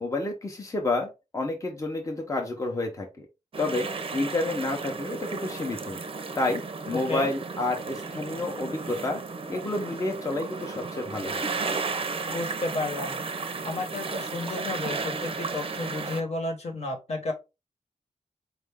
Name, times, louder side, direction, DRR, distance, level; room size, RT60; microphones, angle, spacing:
voice 1, 0.0-3.3 3.6-6.0 6.4-9.2 9.5-11.5, left 2 dB, 25° left, 0.8 m, -30 dB
sound 1, 3.5-16.2, right 4 dB, 45° right, 0.6 m, -34 dB
voice 2, 12.3-13.2 13.6-17.3, left 2 dB, 55° left, 1.2 m, -32 dB
4.5 x 2.5 x 3.5 m
wide cardioid pair, 155°, 13 cm